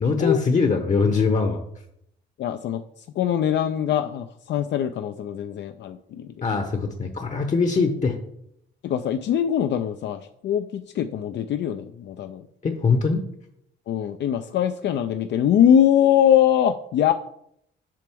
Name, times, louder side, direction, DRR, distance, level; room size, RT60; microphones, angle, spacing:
voice 1, 0.0-1.6 6.4-8.2 12.6-13.2, left 4 dB, 35° left, 6 dB, 0.8 m, -22 dB
voice 2, 2.4-6.3 8.8-12.4 13.9-17.1, left 10 dB, 65° left, 8 dB, 0.4 m, -22 dB
7.6 x 5.0 x 3.5 m, 0.74 s
cardioid pair, 90°, 20 cm